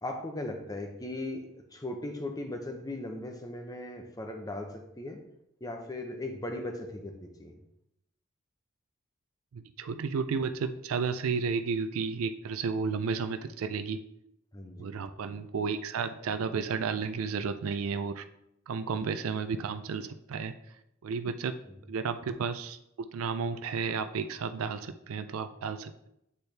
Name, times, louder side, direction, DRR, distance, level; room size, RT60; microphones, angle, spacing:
voice 1, 0.0-5.2 5.6-7.6 14.5-15.0 21.7-21.8, left 1 dB, 15° left, 4 dB, 0.7 m, -38 dB
voice 2, 9.5-14.0 14.8-18.2 18.7-20.5 21.0-21.5 21.9-22.8 23.1-26.1, right 5 dB, 75° right, 10 dB, 0.4 m, -32 dB
8.3 x 4.4 x 3.3 m, 0.81 s
head